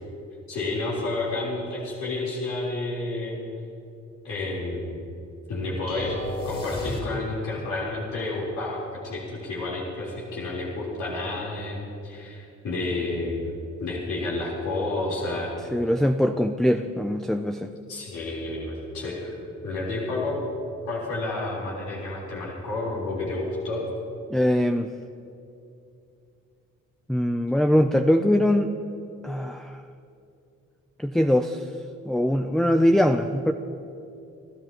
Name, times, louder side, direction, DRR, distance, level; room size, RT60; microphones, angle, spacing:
voice 1, 0.5-3.4 4.2-5.0 5.5-6.2 6.4-15.5 17.9-19.4 19.6-20.4 20.9-23.8, left 2 dB, 75° left, -6 dB, 3.9 m, -30 dB
sound 1, 5.9-7.6, left 2 dB, 35° left, 3.9 m, -33 dB
voice 2, 15.7-17.7 24.3-24.9 27.1-28.7 29.2-29.8 31.0-31.7 32.0-33.5, equal, ahead, 7 dB, 0.5 m, -22 dB
28.5 x 13.0 x 3.0 m, 2.6 s
cardioid pair, 90°, 30 cm